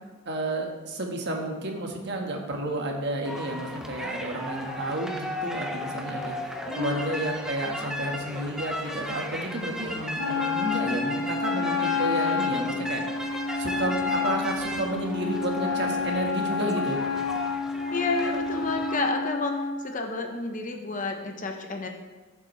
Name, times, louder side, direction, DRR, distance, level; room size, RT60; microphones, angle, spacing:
voice 1, 0.2-6.4 6.7-13.0 13.6-17.0, right 1 dB, 55° right, 2 dB, 1.4 m, -31 dB
sound 1, 3.3-19.1, equal, 5° right, 0.7 m, -36 dB
voice 2, 6.6-7.2 17.9-19.5 19.8-21.9, left 3 dB, 40° left, 3 dB, 1.0 m, -30 dB
Wind instrument woodwind instrument, 10.2-19.8, left 5 dB, 70° left, 0.9 m, -29 dB
14.0 x 7.4 x 3.2 m, 1.3 s
head